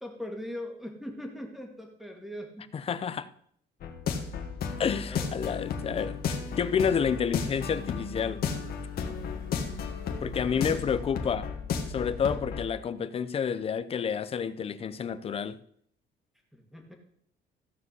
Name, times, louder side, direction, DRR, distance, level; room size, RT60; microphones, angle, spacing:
voice 1, 0.0-2.7 5.1-5.3 10.1-10.8 12.0-12.4 16.5-16.9, left 1 dB, ahead, 2.1 m, -41 dB
voice 2, 2.7-3.3 4.8-8.4 10.2-11.5 11.9-15.6, left 7 dB, 30° left, 0.6 m, -29 dB
sound 1, 3.8-12.6, left 6 dB, 55° left, 1.9 m, -34 dB
15.0 x 5.0 x 8.1 m
cardioid pair, 155°, 18 cm